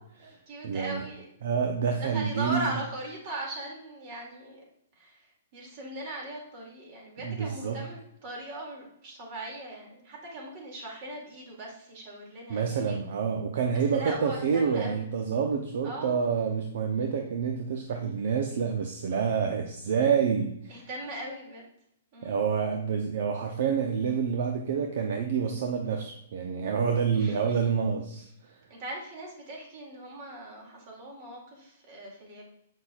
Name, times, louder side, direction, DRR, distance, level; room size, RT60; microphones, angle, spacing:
voice 1, 0.0-1.3 2.0-4.6 4.9-13.0 13.9-15.1 15.8-16.2 20.7-21.7 22.1-22.4 27.1-27.7 28.7-32.5, right 1 dB, 45° right, -1 dB, 2.4 m, -39 dB
voice 2, 0.6-1.0 1.4-2.6 7.2-7.8 12.5-20.9 22.2-28.5, right 6 dB, 65° right, 4 dB, 0.7 m, -28 dB
7.2 x 5.7 x 2.4 m, 0.76 s
hypercardioid pair, 140°, 0 cm